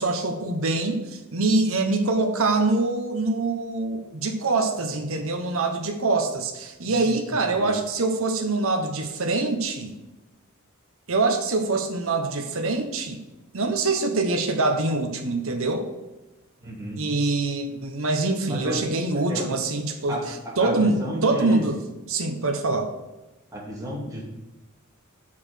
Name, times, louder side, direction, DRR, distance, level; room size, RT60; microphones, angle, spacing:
voice 1, 0.0-9.9 11.1-13.2 13.5-15.9 17.0-20.2 20.6-21.8 22.1-22.9, right 3 dB, 65° right, 4 dB, 1.0 m, -24 dB
voice 2, 6.8-7.7 16.6-17.0 18.5-18.8 19.3-19.4 20.1-21.7 23.5-24.2, right 1 dB, 15° right, -5 dB, 2.5 m, -33 dB
6.5 x 5.7 x 6.6 m, 1.1 s
head